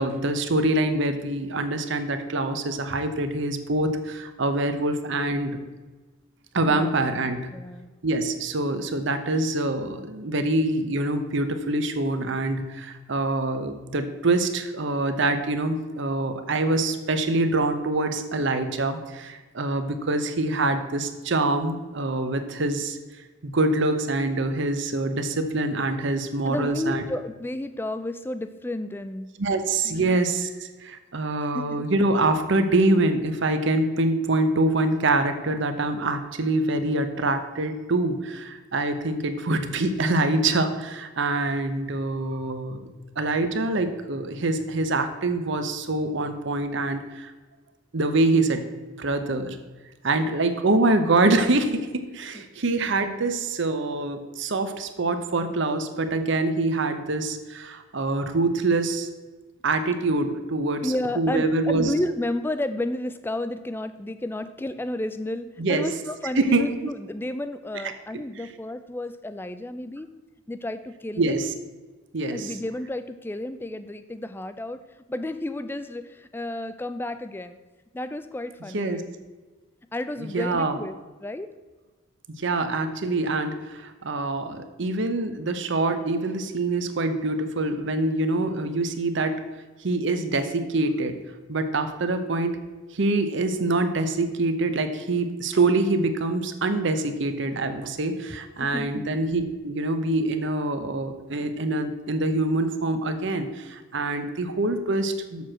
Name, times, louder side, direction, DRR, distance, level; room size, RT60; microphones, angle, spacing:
voice 1, 0.0-5.6 6.5-7.5 8.0-23.0 23.4-27.0 29.4-42.9 43.2-47.3 47.9-48.6 49.0-49.6 50.0-59.1 59.6-61.9 65.6-65.9 66.3-66.9 71.2-71.5 72.1-72.5 78.7-79.0 80.2-80.8 82.4-89.4 89.8-91.2 91.5-92.6 92.9-105.5, right 2 dB, 60° right, 8 dB, 0.7 m, -25 dB
voice 2, 7.5-7.9 26.4-29.4 29.8-30.2 31.5-31.8 52.3-52.4 60.8-70.1 70.5-71.5 72.3-74.8 75.1-77.6 77.9-79.3 79.9-81.5 98.6-99.1, left 1 dB, 10° left, 11 dB, 0.3 m, -32 dB
6.9 x 4.5 x 6.2 m, 1.3 s
head